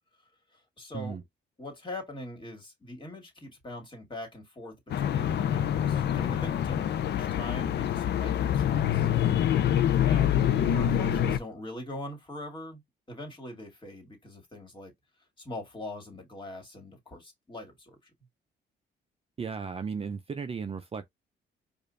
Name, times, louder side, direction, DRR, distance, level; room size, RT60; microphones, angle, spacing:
voice 1, 0.5-1.2 1.6-9.1 10.0-10.4 10.7-12.8 13.1-14.9 15.4-18.1, left 1 dB, 25° left, 2.0 m, -42 dB
sound 1, 4.9-11.4, left 10 dB, 60° left, 0.5 m, -26 dB
voice 2, 19.4-21.1, right 5 dB, 30° right, 0.5 m, -35 dB
4.8 x 2.5 x 2.6 m
cardioid pair, 90°, 20 cm